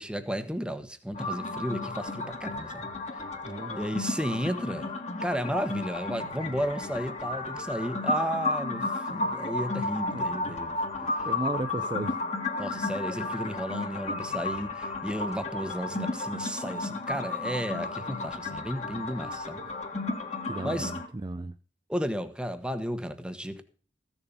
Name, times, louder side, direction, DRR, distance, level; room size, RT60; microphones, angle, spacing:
voice 1, 0.0-2.9 3.7-4.9 5.2-10.8 11.2-11.3 12.6-19.6 20.6-20.9 21.9-23.6, equal, 5° right, 1.1 m, -33 dB
sound 1, 1.1-21.1, left 2 dB, 40° left, 1.8 m, -33 dB
voice 2, 3.4-3.8 10.1-10.3 11.0-12.2 20.5-21.5, right 2 dB, 25° right, 0.5 m, -35 dB
15.0 x 7.0 x 5.3 m
head